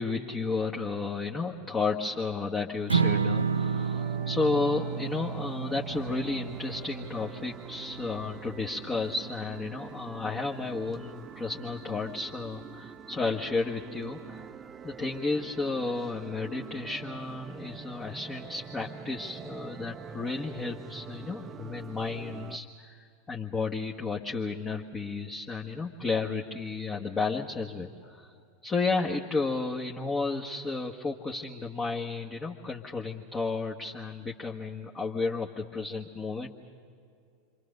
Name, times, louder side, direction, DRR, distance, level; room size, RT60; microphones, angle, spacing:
voice 1, 0.0-14.5 14.8-28.3 28.6-36.5, left 3 dB, 20° left, -1 dB, 1.4 m, -32 dB
sound 1, 2.9-22.6, right 7 dB, 25° right, 0.7 m, -45 dB
Strum, 2.9-9.2, right 5 dB, 85° right, 0.5 m, -31 dB
27.5 x 24.5 x 6.6 m, 2.5 s
figure-of-eight pair, 85°, 0 cm